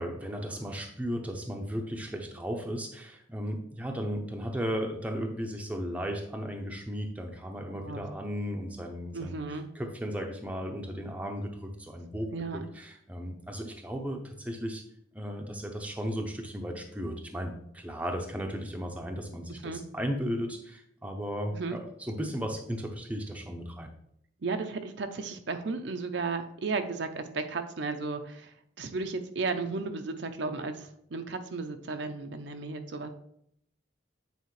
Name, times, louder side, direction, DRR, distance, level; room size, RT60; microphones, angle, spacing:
voice 1, 0.0-14.8 15.1-23.9, equal, 5° right, 3 dB, 0.6 m, -35 dB
voice 2, 7.7-8.1 9.1-9.7 12.3-12.6 19.6-19.8 21.5-21.8 24.4-33.1, right 4 dB, 60° right, 7 dB, 0.6 m, -34 dB
8.1 x 4.3 x 3.2 m, 0.72 s
head